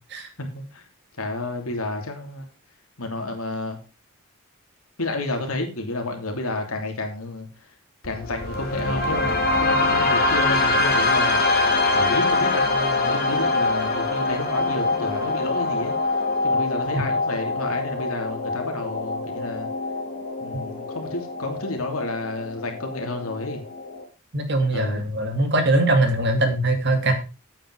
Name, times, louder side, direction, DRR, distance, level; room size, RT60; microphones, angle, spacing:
voice 1, 0.4-0.8 1.2-2.5 3.0-3.8 5.0-7.5 8.0-11.6 11.9-19.7 20.4-23.6 24.7-25.1, left 2 dB, 75° left, 3 dB, 3.1 m, -31 dB
sound 1, 8.0-24.0, left 3 dB, 45° left, 2.3 m, -24 dB
voice 2, 24.3-27.2, right 2 dB, 50° right, 6 dB, 2.3 m, -21 dB
9.2 x 8.9 x 4.7 m, 0.31 s
head